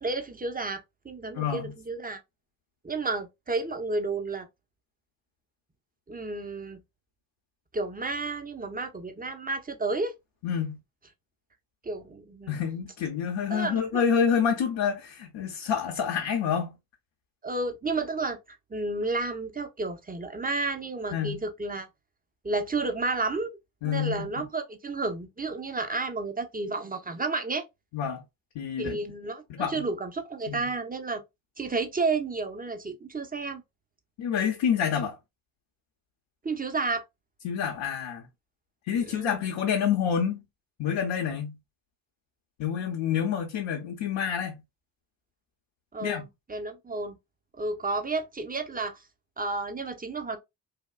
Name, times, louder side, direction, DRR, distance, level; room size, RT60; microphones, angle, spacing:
voice 1, 0.0-2.2 2.8-4.5 6.1-6.8 7.7-10.1 11.8-12.6 13.5-14.0 17.4-21.9 22.4-23.6 23.8-27.7 28.8-31.2 31.6-33.6 36.4-37.0 38.9-39.4 45.9-47.2 47.6-49.0 49.4-50.4, right 3 dB, 20° right, 0.7 m, -31 dB
voice 2, 1.4-1.7 10.4-10.8 12.5-16.8 21.1-21.4 23.8-24.5 27.9-28.2 28.5-29.0 29.5-29.8 30.5-30.7 34.2-35.2 37.4-38.3 38.9-40.4 40.8-41.6 42.6-44.6 46.0-46.2, left 7 dB, 70° left, 0.8 m, -28 dB
3.5 x 2.2 x 2.2 m
supercardioid pair, 45°, 48 cm